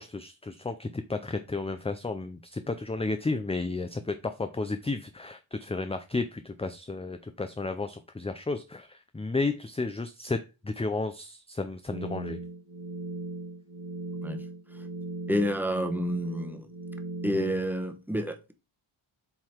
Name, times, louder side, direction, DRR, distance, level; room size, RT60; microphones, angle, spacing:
voice 1, 0.0-12.4, left 3 dB, 15° left, 9 dB, 0.4 m, -33 dB
sound 1, 11.9-17.5, right 2 dB, 90° right, 2.2 m, -38 dB
voice 2, 15.3-16.7 17.2-18.5, equal, 5° right, 5 dB, 1.0 m, -29 dB
7.8 x 3.8 x 4.4 m, 0.28 s
wide cardioid pair, 130°, 49 cm